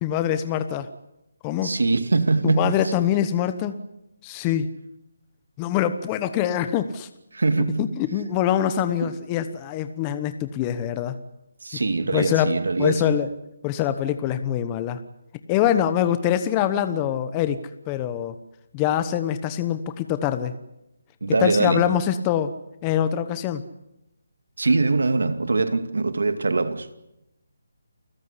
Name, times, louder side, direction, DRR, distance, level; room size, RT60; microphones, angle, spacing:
voice 1, 0.0-0.9 1.4-1.7 2.4-3.8 4.2-4.7 5.6-7.1 7.8-11.2 12.1-13.3 13.6-15.0 15.5-17.6 17.9-18.4 18.7-20.5 21.3-22.5 22.8-23.6, left 10 dB, 20° left, 1.1 m, -24 dB
voice 2, 1.6-2.9 7.3-7.8 9.0-9.1 11.6-13.1 21.2-21.8 24.6-27.1, right 3 dB, 80° right, 2.3 m, -23 dB
29.0 x 15.5 x 9.9 m
hypercardioid pair, 165°, 0 cm